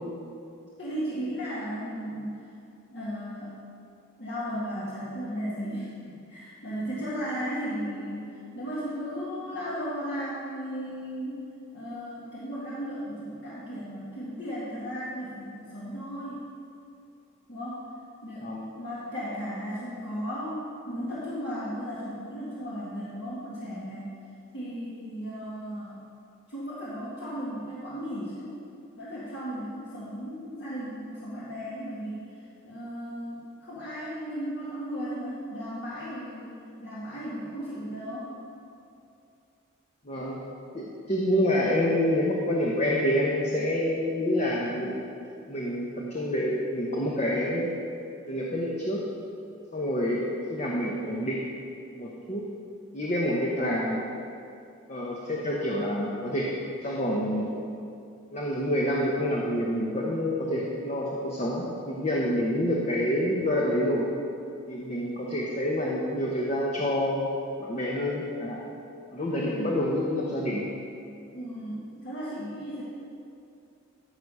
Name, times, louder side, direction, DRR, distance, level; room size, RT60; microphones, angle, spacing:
voice 1, 0.8-2.5 2.9-3.5 4.2-11.5 11.7-16.5 17.5-17.9 18.2-18.5 18.7-24.1 24.5-26.0 26.5-28.5 28.9-32.3 32.6-38.4 69.3-69.7 71.3-72.8, equal, 50° left, -9 dB, 1.8 m, -35 dB
voice 2, 40.0-40.4 40.7-45.1 45.5-47.7 48.3-49.0 49.7-51.4 52.0-52.4 52.9-54.0 54.9-56.5 56.8-57.5 58.3-64.1 64.7-67.3 67.6-68.6 69.1-70.7, left 1 dB, 30° left, -4 dB, 0.9 m, -27 dB
14.0 x 4.9 x 5.5 m, 2.5 s
head